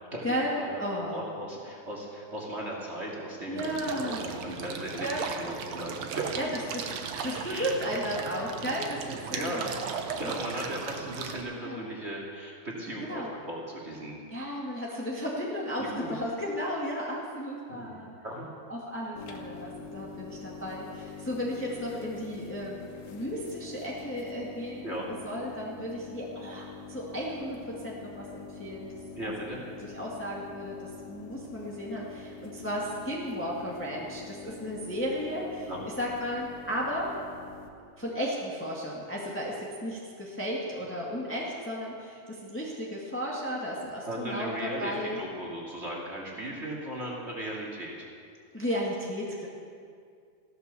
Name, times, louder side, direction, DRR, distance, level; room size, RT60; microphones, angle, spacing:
voice 1, 0.2-1.2 3.5-4.3 5.0-5.3 6.3-6.8 7.2-9.7 10.2-10.4 11.6-11.9 13.0-13.3 14.3-18.1 18.7-22.8 23.1-29.5 29.8-35.7 36.0-37.1 38.0-45.2 48.5-49.5, equal, 5° left, -4 dB, 1.2 m, -34 dB
voice 2, 1.1-6.7 7.1-7.7 9.3-9.8 10.2-14.2 15.8-16.2 17.7-18.0 18.2-18.5 24.8-25.2 29.1-29.7 35.7-35.8 44.1-48.1, right 1 dB, 25° right, -3 dB, 2.4 m, -37 dB
sound 1, 3.6-11.4, right 6 dB, 65° right, 2.0 m, -37 dB
sound 2, 19.2-37.7, left 5 dB, 55° left, 2.1 m, -45 dB
15.0 x 12.5 x 6.9 m, 2.3 s
omnidirectional pair, 3.5 m